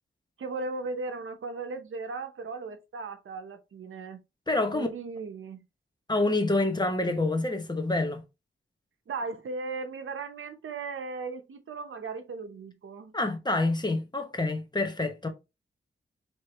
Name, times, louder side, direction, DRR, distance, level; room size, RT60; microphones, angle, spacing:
voice 1, 0.4-4.2 4.7-5.6 9.1-13.1, right 4 dB, 85° right, 0.8 m, -37 dB
voice 2, 4.5-4.9 6.1-8.2 13.1-15.3, left 2 dB, 20° left, 0.9 m, -27 dB
4.7 x 3.1 x 3.0 m
wide cardioid pair, 110°, 20 cm